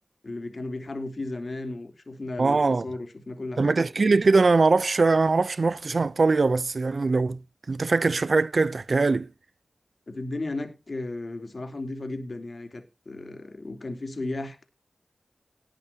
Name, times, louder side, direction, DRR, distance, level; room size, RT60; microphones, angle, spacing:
voice 1, 0.2-3.8 10.1-14.6, left 2 dB, 55° left, 3.2 m, -35 dB
voice 2, 2.4-2.8 3.6-7.4 7.7-9.3, right 3 dB, 60° right, 0.5 m, -22 dB
18.5 x 8.8 x 2.8 m
cardioid pair, 50°, 0 cm